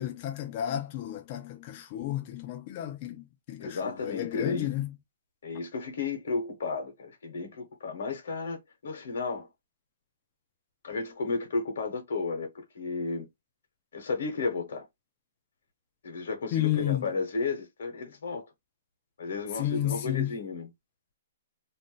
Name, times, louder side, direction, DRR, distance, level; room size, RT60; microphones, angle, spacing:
voice 1, 0.0-4.9 16.5-17.1 19.6-20.3, left 12 dB, 30° left, 0.5 m, -32 dB
voice 2, 3.6-4.7 5.4-9.5 10.8-13.3 13.9-14.9 16.0-18.5 19.2-20.7, left 4 dB, 65° left, 1.1 m, -33 dB
2.6 x 2.1 x 3.7 m
hypercardioid pair, 170°, 0 cm